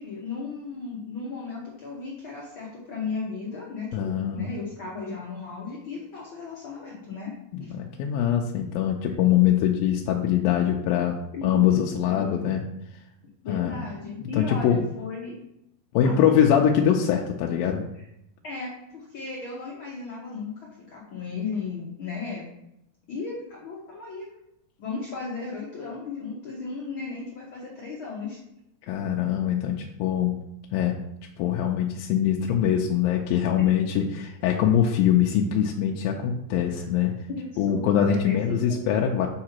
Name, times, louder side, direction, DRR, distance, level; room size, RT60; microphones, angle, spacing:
voice 1, 0.0-7.3 7.6-7.7 11.3-12.2 13.4-15.4 16.0-16.3 18.0-18.1 18.4-22.4 23.1-24.3 24.8-28.4 33.6-33.7 37.3-39.0, left 4 dB, 70° left, -4 dB, 1.2 m, -35 dB
voice 2, 3.9-4.5 7.5-12.6 13.5-13.7 14.4-14.9 15.9-17.9 28.9-30.4 30.7-31.0 31.4-37.1 37.6-39.3, left 9 dB, 90° left, 0 dB, 2.4 m, -23 dB
7.4 x 4.8 x 4.5 m, 0.81 s
omnidirectional pair, 4.1 m